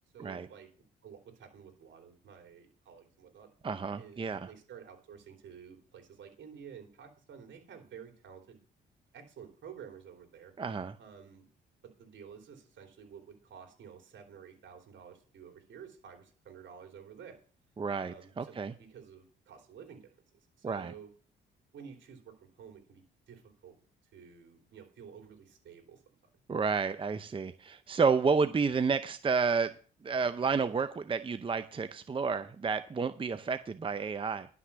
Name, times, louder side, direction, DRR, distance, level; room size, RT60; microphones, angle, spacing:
voice 1, 0.1-0.7 1.0-3.5 4.0-8.6 9.1-10.5 11.0-11.5 11.8-17.4 18.0-20.1 20.6-21.1 21.7-23.8 24.1-26.0, right 7 dB, 70° right, 4 dB, 3.4 m, -51 dB
voice 2, 3.6-4.5 10.6-10.9 17.8-18.7 20.6-20.9 26.5-29.7 30.0-34.5, right 5 dB, 25° right, 10 dB, 0.7 m, -30 dB
11.5 x 6.1 x 6.9 m, 0.41 s
cardioid pair, 90°, 20 cm